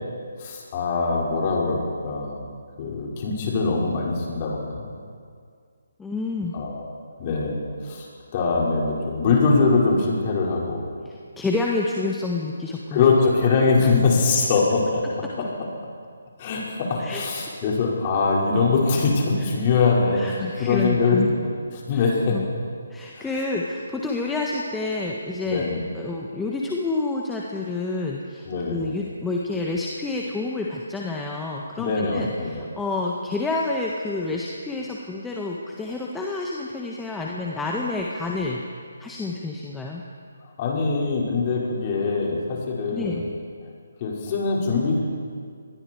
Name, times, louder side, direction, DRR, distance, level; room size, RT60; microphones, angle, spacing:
voice 1, 0.4-2.5 2.8-4.9 6.5-6.8 7.2-8.1 8.3-10.8 12.9-15.0 16.4-21.2 21.9-22.4 23.1-23.3 25.5-25.8 28.4-28.9 31.8-32.7 40.6-43.2 44.0-45.0, left 4 dB, 30° left, -3 dB, 5.6 m, -22 dB
voice 2, 6.0-6.6 11.0-13.1 13.8-14.0 17.0-17.2 19.4-19.5 20.1-21.3 21.9-22.4 22.9-25.7 25.9-38.6 39.0-40.0 42.9-43.2, left 3 dB, 5° left, -2 dB, 1.5 m, -29 dB
27.0 x 20.5 x 4.8 m, 2.1 s
figure-of-eight pair, 145°, 0 cm